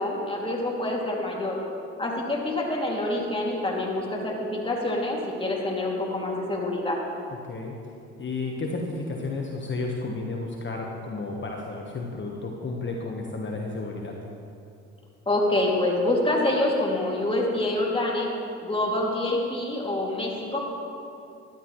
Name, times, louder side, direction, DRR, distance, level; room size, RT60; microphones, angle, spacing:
voice 1, 0.0-1.6 2.0-7.0 15.3-18.3 18.6-20.6, left 1 dB, 15° left, -2 dB, 2.6 m, -26 dB
voice 2, 8.2-14.1, left 3 dB, 35° left, 0 dB, 1.3 m, -32 dB
13.0 x 12.0 x 3.2 m, 2.6 s
hypercardioid pair, 65°, 33 cm